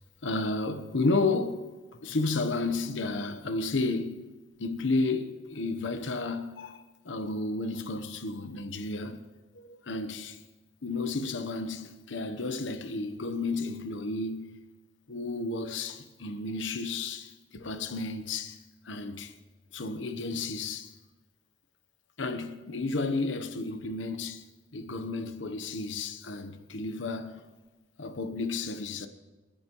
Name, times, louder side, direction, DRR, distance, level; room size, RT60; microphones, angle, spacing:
voice 1, 0.2-1.7 2.0-4.3 4.6-9.2 9.5-10.4 10.8-14.6 15.1-18.6 18.8-19.3 19.7-20.9 22.2-24.4 24.7-27.5 28.0-29.1, left 3 dB, 85° left, 0.9 m, -32 dB
27.5 x 10.5 x 3.0 m
head